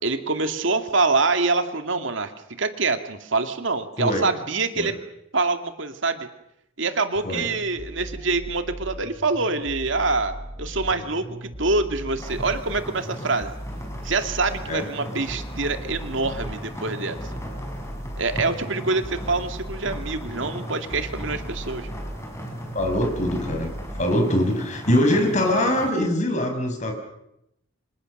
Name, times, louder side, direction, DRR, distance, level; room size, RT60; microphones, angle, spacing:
voice 1, 0.0-2.3 2.6-5.0 5.3-6.3 6.8-13.5 14.0-17.2 18.2-21.9, right 3 dB, 65° right, 7 dB, 2.2 m, -25 dB
sound 1, 7.2-24.0, equal, 15° right, 1.8 m, -37 dB
sound 2, 12.2-25.9, equal, 15° left, 5.9 m, -37 dB
voice 2, 22.7-26.9, left 1 dB, 35° left, 4 dB, 5.9 m, -23 dB
29.0 x 27.0 x 6.6 m, 0.82 s
head